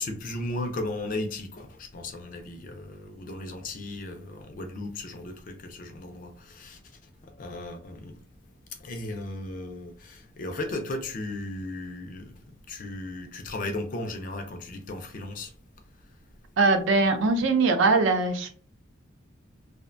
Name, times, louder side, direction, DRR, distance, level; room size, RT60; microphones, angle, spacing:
voice 1, 0.0-6.8 7.2-8.2 8.8-12.4 12.7-15.5, left 2 dB, 40° left, 0.4 m, -36 dB
voice 2, 16.6-18.5, right 3 dB, 65° right, 0.4 m, -21 dB
2.5 x 2.1 x 2.4 m
head